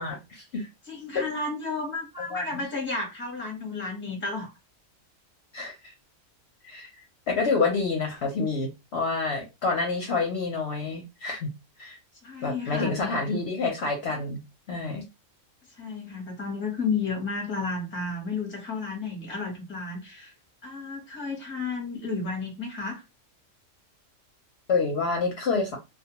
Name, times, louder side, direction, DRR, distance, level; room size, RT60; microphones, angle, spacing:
voice 1, 0.0-0.7 1.1-1.2 2.3-2.5 5.5-5.9 6.6-6.9 7.3-11.5 11.8-12.0 12.4-14.4 14.7-15.0 24.7-25.8, left 4 dB, 60° left, 0.8 m, -28 dB
voice 2, 0.9-4.5 12.2-13.1 15.8-20.3 20.6-23.0, left 4 dB, 10° left, 0.7 m, -32 dB
2.2 x 2.2 x 2.8 m
omnidirectional pair, 1.4 m